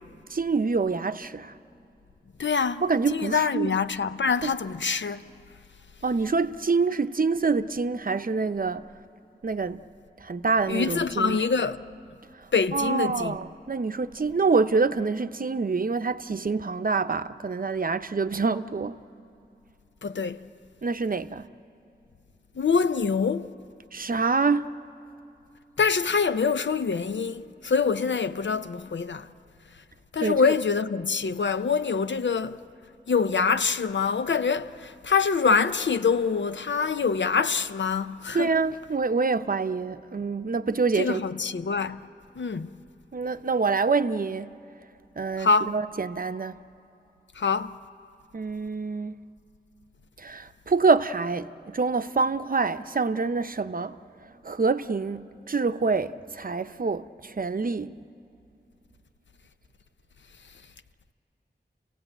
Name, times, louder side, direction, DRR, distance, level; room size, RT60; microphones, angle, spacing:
voice 1, 0.3-1.5 2.8-3.8 4.4-4.5 6.0-8.9 9.4-9.8 10.2-11.4 12.7-19.0 20.8-21.5 23.9-24.7 30.2-30.5 38.3-41.2 43.1-44.5 45.2-46.5 48.3-49.2 50.2-53.9 54.4-57.9, right 4 dB, 50° right, 0.6 m, -26 dB
voice 2, 2.4-5.2 10.7-11.8 12.5-13.4 20.0-20.4 22.6-23.5 25.8-29.3 30.1-32.6 33.1-38.6 40.9-42.0 42.4-42.7 45.4-45.8 47.4-47.7, left 5 dB, 85° left, 0.6 m, -25 dB
29.5 x 16.5 x 9.0 m
wide cardioid pair, 65°, 18 cm